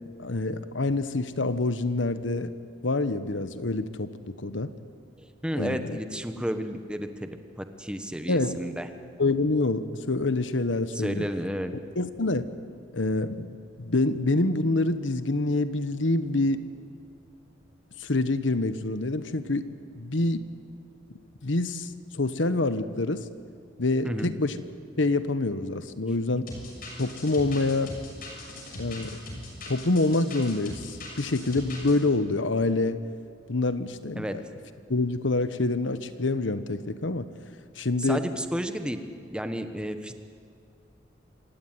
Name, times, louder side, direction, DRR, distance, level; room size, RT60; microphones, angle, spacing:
voice 1, 0.2-2.5 2.8-4.7 5.5-6.0 8.3-8.6 9.2-11.3 12.0-12.5 12.9-13.5 13.8-16.6 18.0-19.7 20.0-20.4 21.4-23.3 23.8-24.6 25.0-26.5 27.0-27.9 28.8-29.2 29.7-33.0 33.5-34.4 34.9-37.3 37.8-38.2, left 2 dB, 75° left, 12 dB, 1.1 m, -26 dB
voice 2, 5.2-7.3 7.6-8.9 10.9-11.8 24.0-24.3 34.2-34.4 38.0-39.0 39.3-40.1, equal, 5° right, 8 dB, 1.3 m, -32 dB
sound 1, 26.5-31.9, left 1 dB, 50° left, 7.0 m, -40 dB
27.0 x 16.5 x 9.6 m, 2.3 s
head